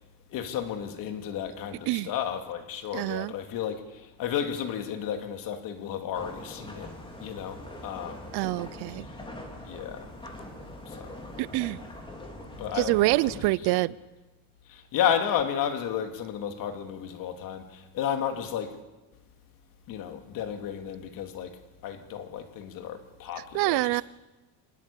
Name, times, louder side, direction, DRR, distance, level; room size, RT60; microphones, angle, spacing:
voice 1, 0.3-6.9 7.2-8.4 9.7-10.1 10.9-11.1 12.6-13.8 14.7-18.8 19.9-24.0, left 9 dB, 50° left, 2.5 m, -33 dB
voice 2, 2.9-3.3 8.3-9.1 11.4-11.8 12.7-14.0 23.5-24.0, right 20 dB, 65° right, 0.8 m, -26 dB
sound 1, 6.1-13.4, left 1 dB, 10° left, 3.0 m, -43 dB
26.0 x 19.5 x 8.5 m
cardioid pair, 175°, 42 cm